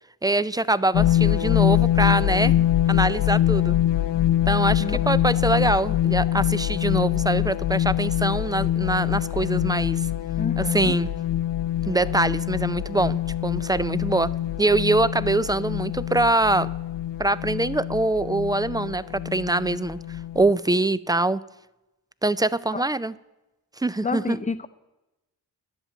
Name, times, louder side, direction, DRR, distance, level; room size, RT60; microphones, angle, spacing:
voice 1, 0.2-3.8 4.5-10.1 10.6-11.1 11.9-14.3 14.6-16.7 17.2-20.0 20.3-21.4 22.2-23.1 23.8-24.4, right 2 dB, 10° right, 17 dB, 0.3 m, -24 dB
sound 1, 0.9-20.5, left 12 dB, 75° left, 0.6 m, -24 dB
voice 2, 10.4-11.0 22.7-22.8 24.0-24.7, left 4 dB, 15° left, 10 dB, 0.7 m, -29 dB
10.5 x 8.1 x 7.5 m, 1.0 s
cardioid pair, 45°, 43 cm